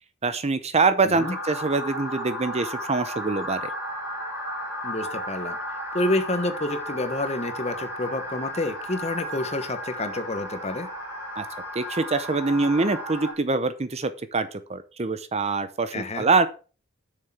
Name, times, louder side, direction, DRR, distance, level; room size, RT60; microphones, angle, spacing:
voice 1, 0.2-3.7 11.4-11.5 11.7-16.5, right 3 dB, 30° right, 12 dB, 0.7 m, -24 dB
voice 2, 1.0-1.3 4.8-5.6 5.9-10.9 15.9-16.3, left 2 dB, 30° left, 9 dB, 1.2 m, -28 dB
sound 1, 1.1-13.3, equal, 15° right, 3.5 m, -34 dB
7.4 x 6.6 x 5.9 m, 0.36 s
head